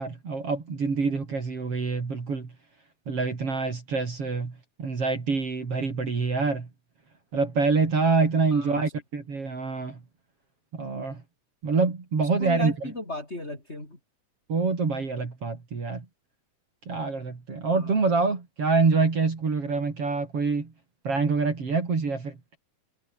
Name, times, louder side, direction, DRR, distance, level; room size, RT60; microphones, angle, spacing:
voice 1, 0.0-2.5 3.1-4.5 4.8-6.7 7.3-10.0 10.7-11.2 11.6-12.9 14.5-16.1 16.9-20.7 21.0-22.4, right 4 dB, 45° right, 4.5 m, -26 dB
voice 2, 8.5-8.9 12.4-14.0 17.7-17.9, left 2 dB, 15° left, 7.0 m, -36 dB
omnidirectional pair, 3.9 m